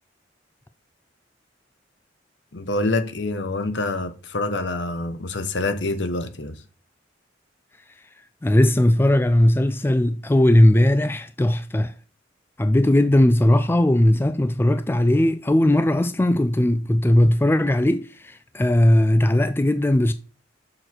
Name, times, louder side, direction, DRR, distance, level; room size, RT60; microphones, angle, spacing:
voice 1, 2.5-6.6, left 2 dB, 65° left, 1.0 m, -26 dB
voice 2, 8.4-11.9 12.6-20.1, left 1 dB, 10° left, 0.3 m, -18 dB
6.6 x 6.3 x 4.4 m
head